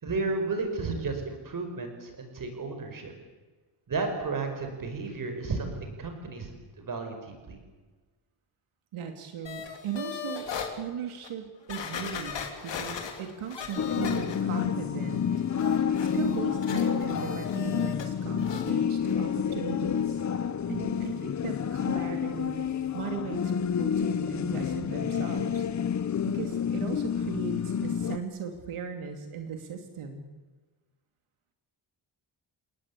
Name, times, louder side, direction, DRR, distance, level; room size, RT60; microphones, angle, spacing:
voice 1, 0.0-3.1 3.9-7.6, right 3 dB, 40° right, 5 dB, 5.2 m, -33 dB
voice 2, 8.9-10.5 10.8-15.2 15.6-20.2 20.7-22.7 22.9-25.7 26.3-30.2, right 7 dB, 85° right, 5 dB, 2.8 m, -38 dB
sound 1, 9.5-10.7 11.2-11.3 11.7-14.7 15.0-18.1 18.4-18.7 19.1-19.2, left 6 dB, 60° left, 3.3 m, -39 dB
sound 2, 13.8-28.2, left 7 dB, 35° left, 0.8 m, -29 dB
29.5 x 18.5 x 8.5 m, 1.3 s
wide cardioid pair, 170°, 48 cm